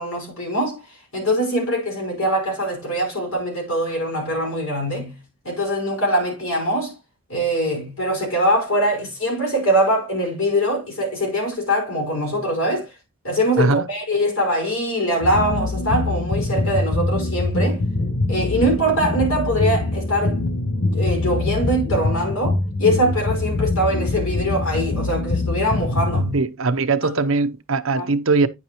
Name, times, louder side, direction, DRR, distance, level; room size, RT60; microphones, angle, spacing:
voice 1, 0.0-5.2 5.4-7.0 7.3-12.9 13.2-17.8 18.3-20.4 20.9-26.4 27.2-27.3 27.9-28.1, equal, 80° left, 5.5 m, -22 dB
sound 1, 15.2-26.4, left 2 dB, 60° left, 1.0 m, -23 dB
voice 2, 26.3-28.5, right 3 dB, 70° right, 0.8 m, -20 dB
9.5 x 7.0 x 3.0 m
head